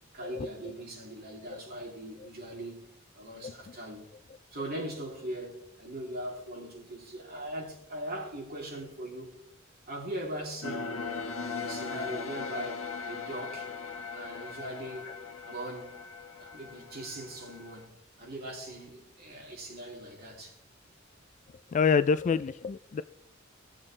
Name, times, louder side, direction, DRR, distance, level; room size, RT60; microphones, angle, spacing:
voice 1, 0.1-2.9 3.1-4.1 4.5-9.3 9.9-10.9 11.6-13.7 14.1-15.1 15.4-16.1 16.4-17.9 18.2-20.6, right 1 dB, 50° right, 3.0 m, -40 dB
sound 1, 10.6-17.9, left 5 dB, 80° left, 1.3 m, -39 dB
voice 2, 21.7-23.0, left 6 dB, 35° left, 0.3 m, -26 dB
18.0 x 7.3 x 3.3 m
head